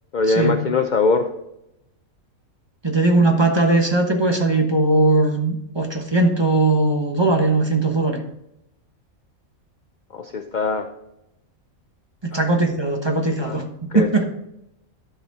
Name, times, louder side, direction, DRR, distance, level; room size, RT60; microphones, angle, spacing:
voice 1, 0.1-1.3 10.1-10.9 12.3-12.5 13.4-13.6 13.9-14.1, left 3 dB, 50° left, 7 dB, 0.5 m, -21 dB
voice 2, 2.8-8.2 12.3-13.6 13.9-14.2, right 2 dB, 20° right, 2 dB, 1.1 m, -19 dB
12.0 x 5.0 x 4.1 m, 0.82 s
omnidirectional pair, 1.4 m